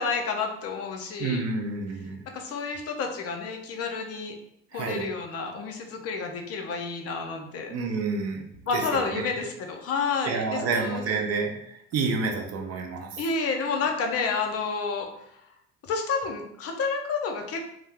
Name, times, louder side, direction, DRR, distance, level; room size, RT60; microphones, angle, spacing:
voice 1, 0.0-1.4 2.3-4.4 4.7-7.7 8.7-11.2 13.2-15.4 15.9-17.7, left 4 dB, 45° left, 3 dB, 0.5 m, -30 dB
voice 2, 1.2-2.2 4.7-5.1 7.7-8.4 8.7-9.3 10.2-13.1, right 4 dB, 45° right, 3 dB, 0.6 m, -29 dB
2.6 x 2.0 x 3.2 m, 0.75 s
hypercardioid pair, 70°, 35 cm